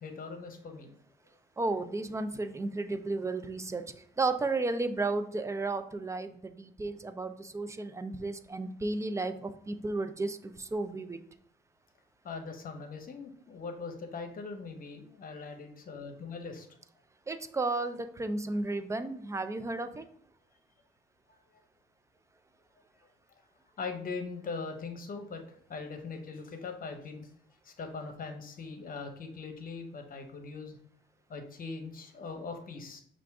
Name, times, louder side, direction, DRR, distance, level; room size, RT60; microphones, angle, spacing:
voice 1, 0.0-1.0 12.2-16.7 23.8-27.3 27.6-30.8 31.3-33.0, left 4 dB, 45° left, 5 dB, 0.9 m, -41 dB
voice 2, 1.6-3.8 4.2-11.2 17.3-20.0, right 3 dB, 15° right, 10 dB, 0.4 m, -33 dB
5.6 x 2.5 x 3.5 m, 0.63 s
cardioid pair, 90°, 20 cm